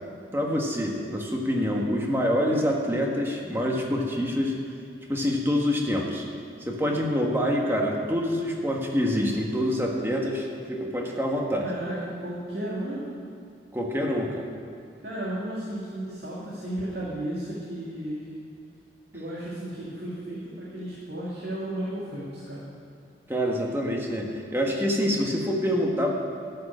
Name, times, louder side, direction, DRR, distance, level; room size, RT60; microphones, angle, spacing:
voice 1, 0.3-4.6 5.1-6.2 6.6-11.7 13.7-14.5 23.3-26.1, equal, 15° right, 0 dB, 1.3 m, -26 dB
voice 2, 11.6-13.1 15.0-18.4 19.1-22.6, right 1 dB, 65° right, -7 dB, 2.2 m, -34 dB
12.5 x 6.7 x 8.9 m, 2.4 s
head